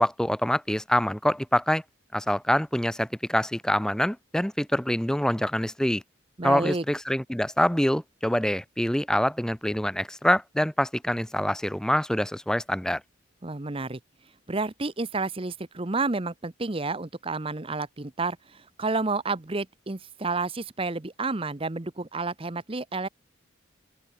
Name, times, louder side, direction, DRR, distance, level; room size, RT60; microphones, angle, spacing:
voice 1, 0.0-1.8 2.1-6.0 6.4-13.0, equal, 5° left, 0.6 m, -25 dB
voice 2, 6.4-6.8 13.4-14.0 14.5-23.1, right 3 dB, 25° right, 0.8 m, -30 dB
open air
head